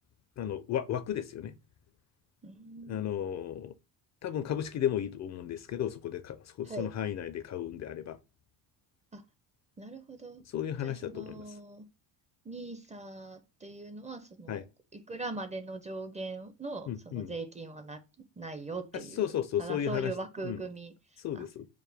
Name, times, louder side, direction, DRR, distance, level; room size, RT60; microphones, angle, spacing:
voice 1, 0.4-1.5 2.9-3.7 4.2-8.2 10.5-11.4 14.5-14.6 16.9-17.3 19.2-20.1 20.4-20.6 21.2-21.7, left 10 dB, 40° left, 0.4 m, -34 dB
voice 2, 2.4-3.1 6.7-6.9 9.1-9.2 9.8-10.4 10.8-11.9 12.4-14.6 14.9-18.0 18.4-19.3 19.6-21.4, right 2 dB, 15° right, 0.4 m, -41 dB
4.7 x 2.1 x 3.3 m
cardioid pair, 105°, 42 cm